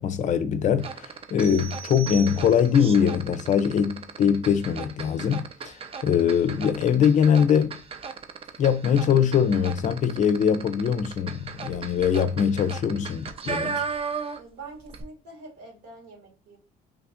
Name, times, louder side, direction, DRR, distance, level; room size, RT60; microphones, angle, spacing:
voice 1, 0.0-7.8 8.6-13.8, left 8 dB, 45° left, 0.4 m, -22 dB
sound 1, 0.8-14.6 14.8-15.0, right 5 dB, 35° right, 0.5 m, -36 dB
sound 2, 1.4-2.9, right 8 dB, 5° right, 0.9 m, -40 dB
voice 2, 14.3-16.6, right 3 dB, 80° right, 1.9 m, -45 dB
3.1 x 2.5 x 3.5 m
cardioid pair, 110°, 17 cm